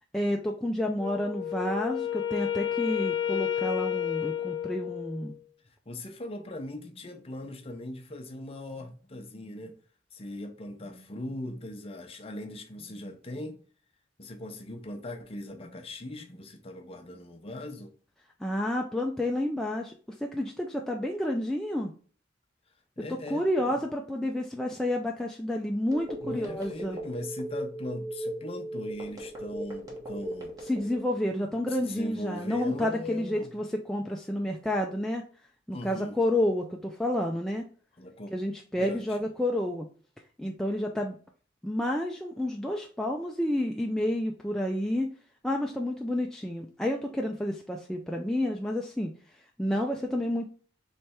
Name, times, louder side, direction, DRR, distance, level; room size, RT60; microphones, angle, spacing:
voice 1, 0.1-5.3 18.4-19.9 20.2-21.9 23.3-27.0 30.7-35.2 35.7-37.6 38.3-39.9 40.4-41.2 41.6-45.1 45.4-49.1 49.6-50.5, left 1 dB, 5° left, 0.3 m, -30 dB
Wind instrument woodwind instrument, 1.0-5.4, left 10 dB, 70° left, 0.9 m, -31 dB
voice 2, 5.6-9.8 10.1-13.6 14.2-17.9 23.0-23.8 26.2-30.6 31.7-33.5 35.7-36.2 38.0-38.3 38.8-39.2, left 1 dB, 30° left, 0.6 m, -40 dB
Telephone, 25.9-31.1, right 1 dB, 20° right, 1.1 m, -37 dB
3.3 x 3.2 x 4.3 m
head